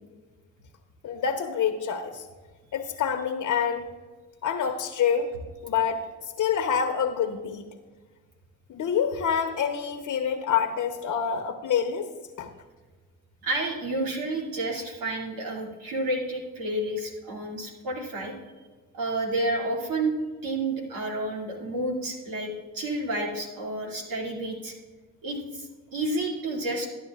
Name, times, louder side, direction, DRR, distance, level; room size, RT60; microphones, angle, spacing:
voice 1, 1.0-2.3 2.7-3.9 4.4-5.3 5.6-7.7 8.7-12.1 12.4-12.5, left 7 dB, 55° left, 6 dB, 0.9 m, -27 dB
voice 2, 13.4-18.3 18.9-20.1 20.4-24.7 25.2-26.9, right 2 dB, 75° right, -1 dB, 2.4 m, -30 dB
13.5 x 10.0 x 2.4 m, 1.4 s
supercardioid pair, 65°, 34 cm